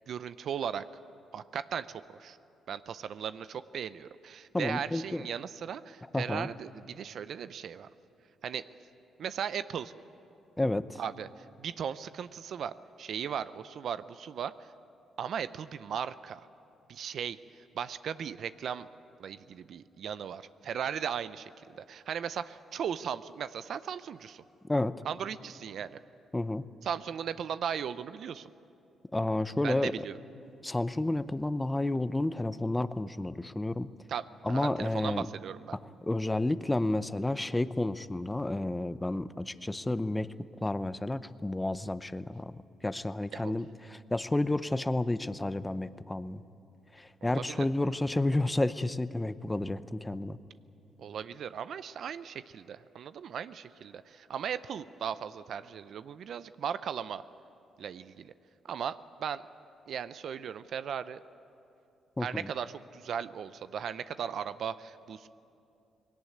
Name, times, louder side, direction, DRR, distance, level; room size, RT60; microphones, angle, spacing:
voice 1, 0.1-0.8 1.3-2.4 2.7-7.9 8.4-8.6 9.2-9.9 11.0-14.7 15.2-16.5 16.9-18.9 19.2-24.4 25.0-26.0 26.8-28.5 29.6-30.2 34.1-35.8 43.3-43.5 47.2-47.7 51.0-57.2 57.8-58.3 58.6-59.5 59.9-61.2 62.2-65.3, right 8 dB, 65° right, 14 dB, 0.5 m, -37 dB
voice 2, 4.5-5.2 6.1-6.5 10.6-11.0 24.7-25.0 26.3-26.7 29.1-29.9 30.6-33.9 34.4-35.3 36.0-42.6 42.8-46.4 46.9-50.4 62.2-62.5, left 2 dB, 15° left, 14 dB, 0.7 m, -31 dB
20.0 x 17.5 x 9.4 m, 2.7 s
cardioid pair, 80°, 0 cm